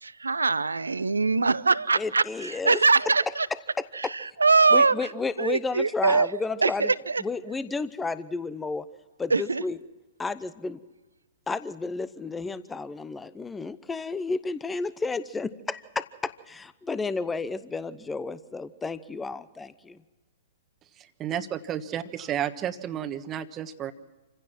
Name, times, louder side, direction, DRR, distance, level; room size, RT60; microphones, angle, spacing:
voice 1, 0.0-3.5 3.9-5.1 5.4-6.3 6.6-7.2 9.3-9.6, right 4 dB, 85° right, 18 dB, 0.7 m, -23 dB
voice 2, 2.0-2.8 3.8-4.1 4.7-6.9 7.2-8.9 9.2-9.8 10.2-10.8 11.5-20.0, left 4 dB, 10° left, 15 dB, 0.8 m, -32 dB
voice 3, 21.0-23.9, right 10 dB, 25° right, 11 dB, 1.3 m, -32 dB
27.5 x 16.0 x 6.0 m, 1.1 s
figure-of-eight pair, 110°, 0 cm